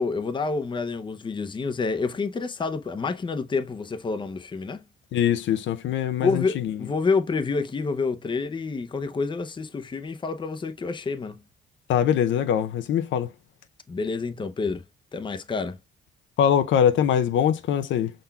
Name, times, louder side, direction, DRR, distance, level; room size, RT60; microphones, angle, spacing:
voice 1, 0.0-4.8 6.2-11.4 13.9-14.8 15.1-15.8, left 4 dB, 25° left, 0.6 m, -28 dB
voice 2, 5.1-6.8 11.9-13.3 16.4-18.1, left 9 dB, 75° left, 0.5 m, -22 dB
5.4 x 3.8 x 2.2 m
cardioid pair, 90°, 20 cm